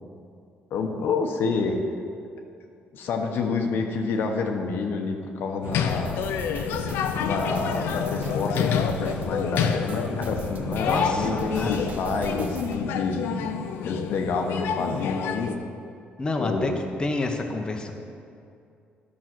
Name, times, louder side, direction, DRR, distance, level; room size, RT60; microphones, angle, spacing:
voice 1, 0.7-1.8 2.9-6.2 7.2-13.2 13.8-15.6 16.4-16.7, left 4 dB, 70° left, 3 dB, 1.0 m, -28 dB
sound 1, 5.6-15.5, left 8 dB, 90° left, 0.6 m, -28 dB
sound 2, 5.6-12.8, right 3 dB, 45° right, 0.9 m, -37 dB
voice 2, 10.9-12.0 16.2-16.7 17.0-17.9, left 2 dB, 25° left, 3 dB, 0.9 m, -28 dB
10.5 x 6.1 x 6.1 m, 2.5 s
cardioid pair, 105°, 4 cm